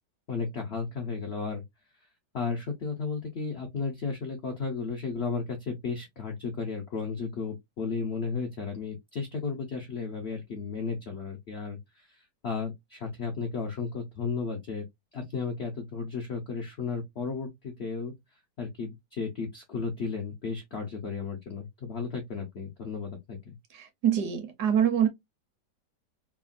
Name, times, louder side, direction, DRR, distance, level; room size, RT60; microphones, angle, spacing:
voice 1, 0.3-1.6 2.3-14.8 15.1-18.1 18.6-23.6, left 5 dB, 75° left, 0.6 m, -34 dB
voice 2, 23.7-25.1, right 9 dB, 70° right, 1.2 m, -25 dB
3.4 x 2.2 x 2.3 m
omnidirectional pair, 1.9 m